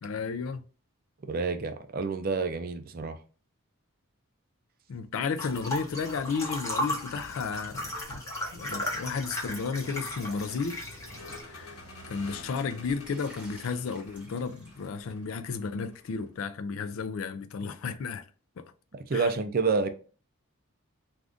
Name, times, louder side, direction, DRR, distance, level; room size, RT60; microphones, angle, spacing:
voice 1, 0.0-0.6 4.9-8.2 8.5-10.8 11.5-11.8 12.1-18.3 18.6-18.7 19.1-19.3, left 5 dB, 70° left, 0.4 m, -33 dB
voice 2, 1.2-3.2 18.9-19.9, right 4 dB, 45° right, 0.4 m, -29 dB
sound 1, 5.4-11.4, left 1 dB, 15° left, 0.8 m, -36 dB
Vehicle, 7.1-16.3, left 1 dB, 85° left, 1.1 m, -49 dB
Drip, 8.1-11.6 12.0-15.1, equal, 5° right, 1.1 m, -52 dB
2.5 x 2.5 x 3.3 m
head